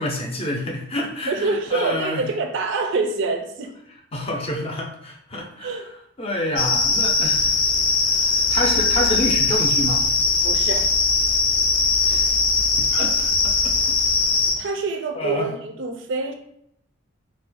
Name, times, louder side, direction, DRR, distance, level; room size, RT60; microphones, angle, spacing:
voice 1, 0.0-2.3 4.1-5.8 6.2-7.5 8.1-10.0 12.0-12.3 12.8-13.5 15.1-15.5, left 1 dB, 30° left, 0 dB, 0.5 m, -28 dB
voice 2, 1.3-3.7 5.6-5.9 10.4-10.9 14.6-16.3, right 3 dB, 60° right, 6 dB, 0.4 m, -26 dB
sound 1, 6.6-14.5, left 4 dB, 75° left, 0.6 m, -20 dB
2.4 x 2.2 x 4.0 m, 0.73 s
head